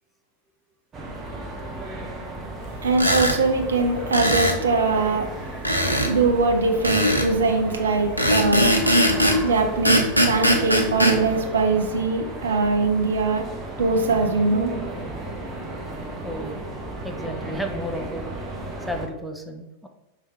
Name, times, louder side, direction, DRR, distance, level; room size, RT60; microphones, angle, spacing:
sound 1, 0.9-19.1, right 2 dB, 20° right, 0.8 m, -34 dB
voice 1, 2.8-5.3 6.1-8.8 9.4-13.5 13.8-14.7, right 3 dB, 70° right, 4 dB, 0.6 m, -22 dB
sound 2, 2.9-3.4 4.1-4.6 5.6-6.1 6.8-7.3 8.2-9.4 9.8-11.2, equal, 90° left, 0.5 m, -20 dB
voice 2, 16.2-16.6 17.0-18.3 18.9-19.9, equal, ahead, 3 dB, 0.4 m, -32 dB
5.1 x 2.8 x 3.1 m, 1.0 s
figure-of-eight pair, 90°, 0 cm